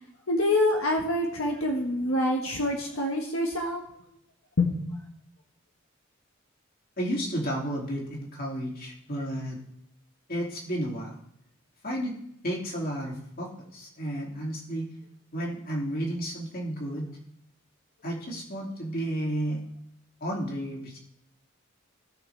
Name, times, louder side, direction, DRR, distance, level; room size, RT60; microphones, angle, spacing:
voice 1, 0.3-3.8 4.6-4.7, left 1 dB, 85° left, 1 dB, 1.4 m, -26 dB
voice 2, 7.0-9.6 10.3-11.2 11.8-12.2 12.4-14.9 15.3-17.1 18.0-19.6 20.2-21.0, right 1 dB, 45° left, -1 dB, 2.6 m, -32 dB
17.5 x 6.2 x 3.4 m, 0.74 s
head